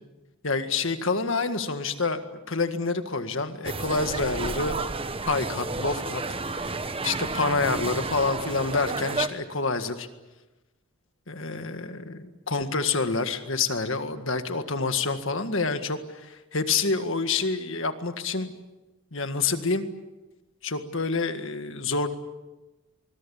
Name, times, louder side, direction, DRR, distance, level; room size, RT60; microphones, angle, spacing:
voice 1, 0.4-2.2 2.5-4.8 5.3-6.2 6.5-10.1 11.3-18.5 19.1-19.9 20.6-22.1, left 4 dB, 60° left, 8 dB, 1.8 m, -27 dB
sound 1, 3.6-9.3, right 3 dB, 25° right, 1.0 m, -31 dB
25.5 x 22.0 x 8.5 m, 1.1 s
head